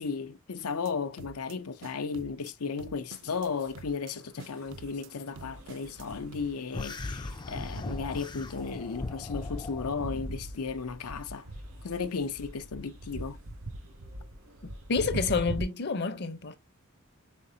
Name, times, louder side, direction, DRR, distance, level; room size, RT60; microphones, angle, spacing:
voice 1, 0.0-11.5 11.8-13.4, left 5 dB, 90° left, 0.6 m, -35 dB
sound 1, 0.6-0.9 1.2-1.6 1.8-2.5 2.8-3.5 3.7-4.1 4.4-5.1 5.4-6.1 6.3-6.5, right 4 dB, 60° right, 0.5 m, -48 dB
sound 2, 3.2-15.6, right 1 dB, 80° right, 2.0 m, -43 dB
sound 3, 6.7-10.2, left 2 dB, 20° left, 0.3 m, -38 dB
voice 2, 14.9-16.6, left 4 dB, 50° left, 0.7 m, -28 dB
5.2 x 3.7 x 2.7 m
head